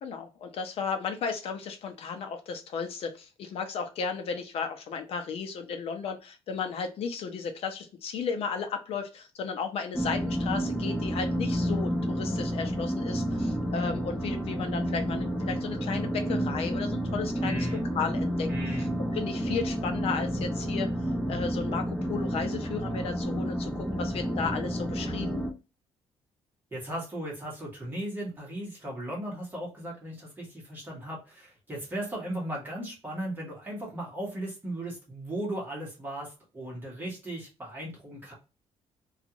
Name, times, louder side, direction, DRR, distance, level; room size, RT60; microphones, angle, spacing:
voice 1, 0.0-17.7 17.9-18.5 19.1-20.9 21.3-25.4, left 5 dB, 60° left, 6 dB, 0.7 m, -34 dB
sound 1, 9.9-25.5, equal, ahead, 0.6 m, -30 dB
voice 2, 17.4-17.8 18.5-18.9 26.7-38.3, right 1 dB, 20° right, -3 dB, 1.2 m, -37 dB
2.5 x 2.4 x 2.8 m, 0.30 s
cardioid pair, 150°, 11 cm